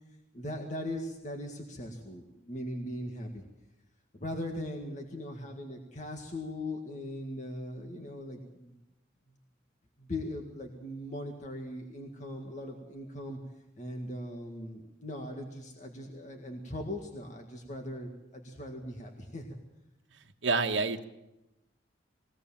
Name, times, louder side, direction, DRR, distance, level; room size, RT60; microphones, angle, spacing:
voice 1, 0.3-3.4 4.1-8.7 10.0-13.4 13.8-19.4, left 1 dB, 40° left, 2 dB, 2.0 m, -39 dB
voice 2, 20.4-21.0, right 4 dB, 85° right, 3 dB, 1.4 m, -27 dB
21.5 x 17.5 x 7.3 m, 0.93 s
head